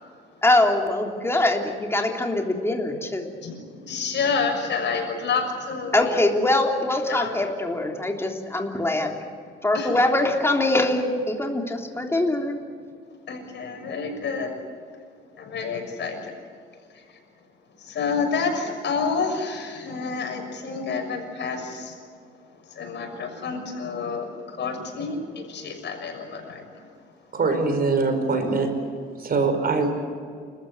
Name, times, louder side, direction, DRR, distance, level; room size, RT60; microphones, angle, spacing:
voice 1, 0.4-3.3 5.9-9.2 9.6-12.6, left 2 dB, 10° left, 2 dB, 3.4 m, -23 dB
voice 2, 3.4-6.3 7.1-7.3 9.7-9.9 13.3-14.5 15.4-16.4 16.9-17.0 17.8-22.0 22.6-26.9, left 5 dB, 65° left, 4 dB, 6.3 m, -29 dB
voice 3, 27.3-28.8 29.2-30.1, right 3 dB, 50° right, 7 dB, 4.9 m, -23 dB
29.5 x 14.0 x 9.5 m, 2.1 s
cardioid pair, 90°, 20 cm